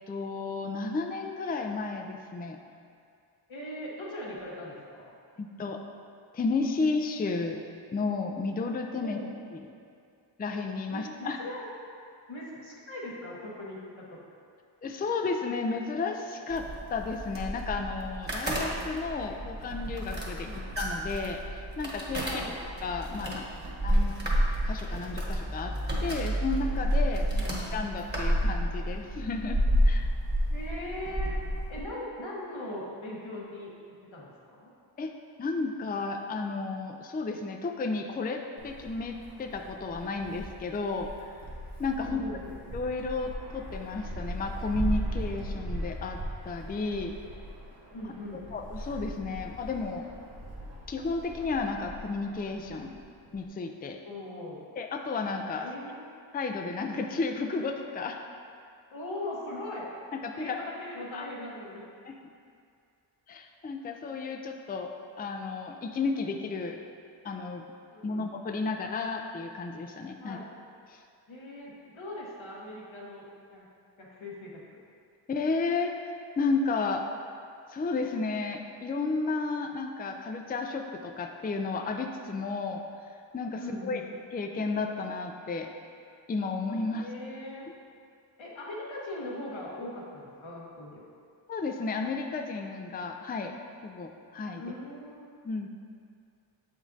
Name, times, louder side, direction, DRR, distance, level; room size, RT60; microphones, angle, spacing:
voice 1, 0.1-2.6 5.4-5.8 6.3-7.6 7.9-9.2 9.5-9.6 10.4-11.4 14.8-20.5 20.8-22.4 22.8-23.5 23.8-24.3 24.6-25.7 26.0-27.3 27.7-30.1 35.0-35.1 35.4-41.1 41.8-42.2 42.7-47.1 48.5-50.0 50.9-53.0 53.3-54.0 54.8-55.7 56.3-58.2 60.2-60.6 61.1-61.3 62.0-62.1 63.3-66.8 67.2-67.6 68.0-70.4 70.9-71.0 75.3-77.1 77.7-82.8 83.3-84.0 84.3-85.7 86.3-87.1 91.5-93.5 93.8-94.6 95.4-95.7, left 4 dB, 20° left, 4 dB, 0.4 m, -32 dB
voice 2, 3.5-5.1 9.0-9.3 10.9-11.7 12.3-14.2 20.3-20.4 22.2-22.6 27.1-27.6 30.5-31.4 31.7-33.7 34.0-34.7 42.0-42.6 47.9-48.4 54.0-54.6 55.6-56.1 58.9-59.9 60.3-61.8 67.9-68.3 70.2-70.5 71.3-73.7 74.0-74.6 83.6-84.0 87.0-87.7 88.4-91.0 94.5-95.3, left 1 dB, 85° left, -5 dB, 1.3 m, -40 dB
sound 1, 16.5-31.8, equal, 20° right, 1.4 m, -30 dB
Wind, 38.6-53.5, right 1 dB, 90° right, 1.0 m, -39 dB
7.1 x 5.0 x 2.7 m, 2.3 s
cardioid pair, 55°, 46 cm